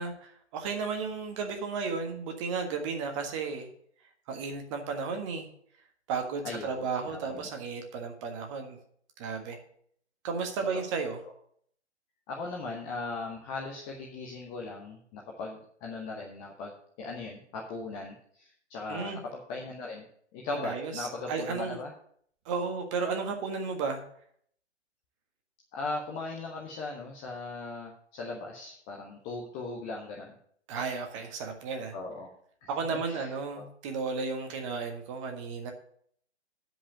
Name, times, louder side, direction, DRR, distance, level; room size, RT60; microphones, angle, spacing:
voice 1, 0.0-3.7 4.3-5.5 6.1-8.8 9.2-9.6 10.2-11.2 18.9-19.2 20.5-20.9 21.3-21.8 22.4-24.0 30.7-31.9 32.7-35.7, right 5 dB, 25° right, 4 dB, 1.6 m, -33 dB
voice 2, 6.4-7.5 10.7-10.8 12.3-16.7 17.0-20.1 20.3-21.9 25.7-30.4 31.9-32.3 32.6-33.6, left 3 dB, 10° left, -2 dB, 0.5 m, -38 dB
9.6 x 5.2 x 7.5 m, 0.64 s
figure-of-eight pair, 125°, 34 cm